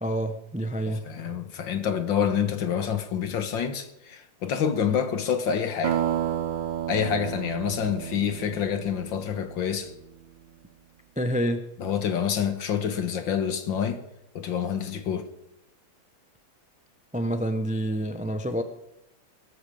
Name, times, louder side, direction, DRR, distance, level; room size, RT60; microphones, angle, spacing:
voice 1, 0.0-1.0 11.2-11.6 17.1-18.6, right 1 dB, 10° right, 0.4 m, -27 dB
voice 2, 0.8-6.0 6.9-9.9 11.8-14.0 14.4-15.3, left 8 dB, 70° left, 2.0 m, -27 dB
sound 1, 5.8-10.1, right 10 dB, 70° right, 1.7 m, -31 dB
21.0 x 13.5 x 5.1 m
omnidirectional pair, 2.2 m